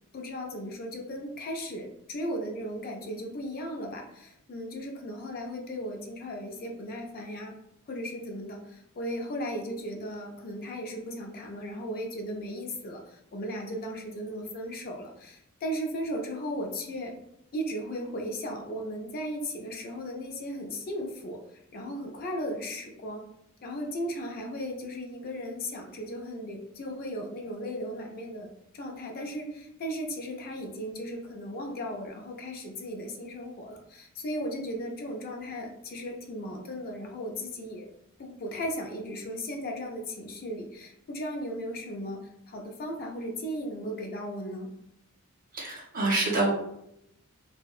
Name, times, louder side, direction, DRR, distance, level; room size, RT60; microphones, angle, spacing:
voice 1, 0.1-7.5 7.9-17.1 17.5-23.2 23.6-28.5 28.7-37.9 38.2-44.7, equal, 45° left, 2 dB, 0.4 m, -36 dB
voice 2, 45.5-46.5, right 2 dB, 40° right, -3 dB, 0.8 m, -26 dB
2.6 x 2.0 x 2.3 m, 0.79 s
head